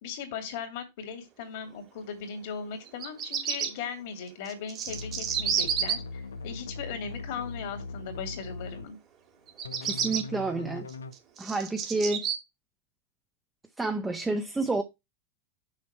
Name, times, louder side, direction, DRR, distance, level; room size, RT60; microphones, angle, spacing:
voice 1, 0.0-9.0, left 6 dB, 60° left, 2.5 m, -38 dB
Bird vocalization bird call bird song, 2.8-3.7 4.4-5.9 9.5-10.2 10.9-12.3, right 8 dB, 35° right, 2.3 m, -30 dB
sound 1, 4.9-8.9 9.6-11.1, left 4 dB, 85° left, 0.9 m, -40 dB
voice 2, 9.8-10.9 11.4-12.3 13.8-14.8, right 3 dB, 10° right, 1.2 m, -29 dB
6.6 x 5.8 x 4.6 m
hypercardioid pair, 95°, 0 cm